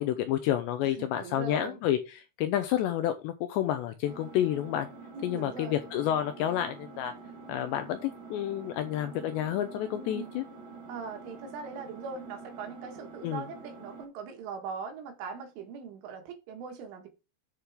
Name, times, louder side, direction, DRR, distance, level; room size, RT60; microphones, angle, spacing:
voice 1, 0.0-4.9 5.2-7.1 7.5-10.4 13.2-13.4, left 11 dB, 80° left, 2.5 m, -30 dB
voice 2, 0.8-1.8 5.1-5.8 9.9-10.3 10.9-17.1, right 5 dB, 75° right, 4.1 m, -40 dB
Engine, 4.0-14.0, right 4 dB, 40° right, 1.9 m, -47 dB
9.9 x 6.4 x 3.6 m
omnidirectional pair, 5.8 m